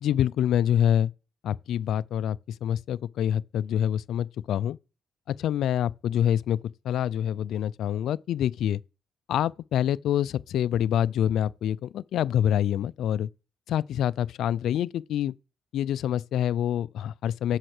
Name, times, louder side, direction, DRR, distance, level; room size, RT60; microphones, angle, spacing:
voice 1, 0.0-1.1 1.4-4.8 5.3-6.6 6.8-8.8 9.3-13.3 13.7-15.3 15.7-17.6, left 10 dB, 75° left, 0.4 m, -26 dB
7.9 x 6.3 x 6.5 m
cardioid pair, 90°, 0 cm